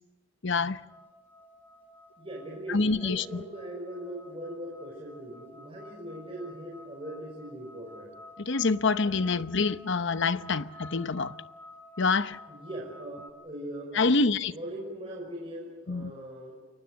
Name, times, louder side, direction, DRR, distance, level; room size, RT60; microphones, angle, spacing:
voice 1, 0.4-0.8 2.7-3.4 8.4-11.4 12.0-12.4 13.9-14.5 15.9-16.1, left 4 dB, 55° left, 0.9 m, -26 dB
sound 1, 0.9-13.3, left 1 dB, 10° left, 2.4 m, -51 dB
voice 2, 2.2-8.2 12.5-14.1 14.4-16.5, right 1 dB, 25° right, 5.7 m, -40 dB
29.5 x 23.0 x 6.5 m
head